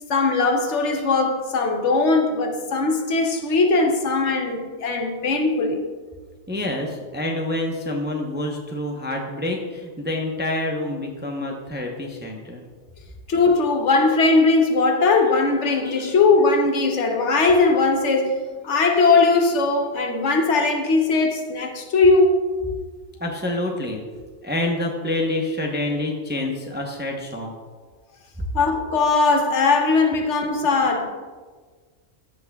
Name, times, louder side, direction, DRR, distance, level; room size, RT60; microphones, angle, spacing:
voice 1, 0.1-5.8 13.3-22.4 28.5-31.1, left 3 dB, 70° left, 1.1 m, -19 dB
voice 2, 6.5-12.6 15.8-16.1 23.2-24.0 24.4-27.5, left 1 dB, 10° right, 0.6 m, -27 dB
13.5 x 6.1 x 2.3 m
omnidirectional pair, 1.3 m